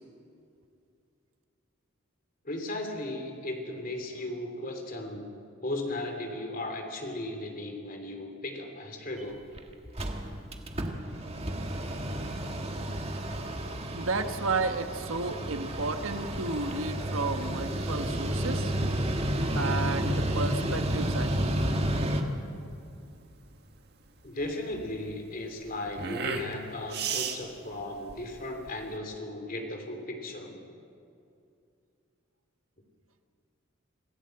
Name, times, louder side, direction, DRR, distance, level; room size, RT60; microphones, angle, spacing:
voice 1, 2.4-5.3 5.6-9.4 24.2-30.6, left 1 dB, 45° left, 3 dB, 3.2 m, -36 dB
Mechanical fan, 9.2-9.3 9.6-9.7 9.9-22.2, right 1 dB, 30° right, 1.7 m, -31 dB
voice 2, 13.9-18.7 19.5-21.6, right 3 dB, 90° right, 8 dB, 1.4 m, -32 dB
sound 1, 20.9-28.9, right 5 dB, 50° right, 1.8 m, -37 dB
26.5 x 16.0 x 7.9 m, 2.5 s
head